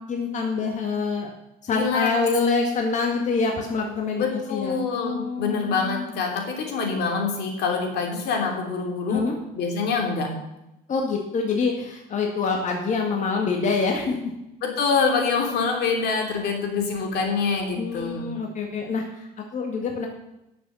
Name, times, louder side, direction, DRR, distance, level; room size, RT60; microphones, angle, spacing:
voice 1, 0.1-1.3 1.6-4.2 4.5-6.1 9.1-9.4 10.9-14.2 17.8-20.1, left 4 dB, 45° left, 1 dB, 1.8 m, -26 dB
voice 2, 1.7-2.1 4.2-9.3 9.5-10.3 14.6-18.3, left 5 dB, 75° left, 2 dB, 3.2 m, -25 dB
11.0 x 6.9 x 6.9 m, 0.89 s
cardioid pair, 110°, 17 cm